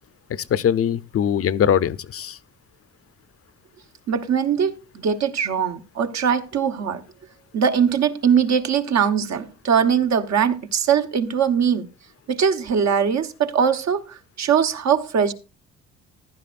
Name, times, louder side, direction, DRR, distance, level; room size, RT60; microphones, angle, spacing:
voice 1, 0.3-2.4, left 9 dB, 50° left, 0.7 m, -21 dB
voice 2, 4.1-7.0 7.5-11.9 12.3-15.3, right 7 dB, 60° right, 1.2 m, -21 dB
15.0 x 11.0 x 2.5 m
cardioid pair, 90°, 30 cm